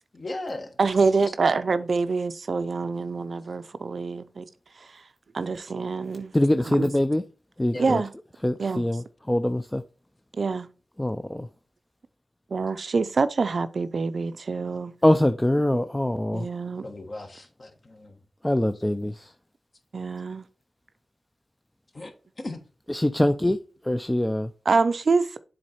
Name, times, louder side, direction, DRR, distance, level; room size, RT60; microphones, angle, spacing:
voice 1, 0.1-0.8 7.7-7.9 16.8-18.2 21.9-22.6, left 2 dB, 45° left, 1.3 m, -37 dB
voice 2, 0.8-4.5 5.3-6.3 6.7-6.9 7.8-8.1 8.6-8.8 10.4-10.7 12.5-14.9 16.3-16.8 19.9-20.5 24.7-25.3, right 4 dB, 60° right, 0.5 m, -25 dB
voice 3, 6.3-7.2 7.6-8.0 8.4-9.8 11.0-11.5 15.0-16.5 18.4-19.3 22.9-23.6 23.8-24.5, left 1 dB, 10° left, 0.4 m, -23 dB
7.5 x 4.0 x 4.3 m
cardioid pair, 70°, 0 cm